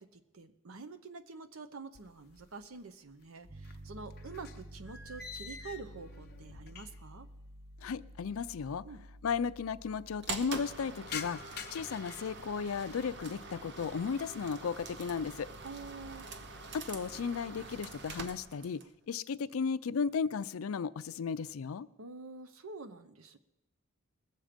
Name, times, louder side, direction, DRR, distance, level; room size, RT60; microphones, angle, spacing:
voice 1, 0.0-7.3 8.8-9.0 15.6-16.3 22.0-23.4, right 4 dB, 90° right, 11 dB, 0.9 m, -47 dB
sound 1, 1.9-2.8 3.1-7.2 7.5-7.6 8.4-8.5 8.7-8.8 9.1-9.6 10.0-13.2 13.6-14.1 14.6-15.0 15.4-16.3, left 6 dB, 50° left, 0.8 m, -48 dB
Piano, 3.5-14.8, equal, 30° right, 0.5 m, -52 dB
voice 2, 7.8-8.8 9.2-11.4 11.7-15.5 16.7-18.8 19.1-21.9, left 6 dB, 80° left, 16 dB, 0.4 m, -35 dB
sound 2, 10.2-18.9, right 3 dB, 55° right, 0.9 m, -45 dB
20.5 x 7.6 x 5.1 m, 0.95 s
head